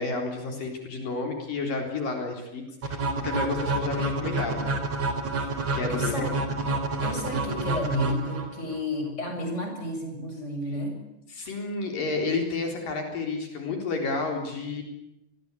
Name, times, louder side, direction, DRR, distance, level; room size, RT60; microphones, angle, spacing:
voice 1, 0.0-4.7 5.7-6.3 11.3-14.8, left 3 dB, 65° left, 4 dB, 5.6 m, -31 dB
sound 1, 2.8-8.8, right 2 dB, 45° right, 4.6 m, -28 dB
voice 2, 5.3-6.3 7.0-11.0, left 1 dB, 15° left, 3 dB, 7.4 m, -32 dB
29.5 x 22.0 x 8.4 m, 0.87 s
omnidirectional pair, 4.2 m